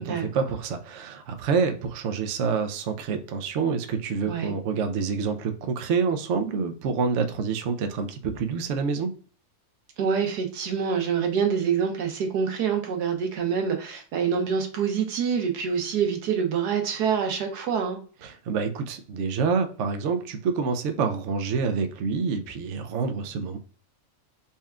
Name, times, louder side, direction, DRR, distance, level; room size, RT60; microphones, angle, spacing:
voice 1, 0.0-9.1 18.2-23.6, right 5 dB, 65° right, 7 dB, 0.8 m, -27 dB
voice 2, 10.0-18.0, right 7 dB, 85° right, 4 dB, 1.4 m, -26 dB
4.2 x 2.3 x 3.5 m, 0.40 s
omnidirectional pair, 1.7 m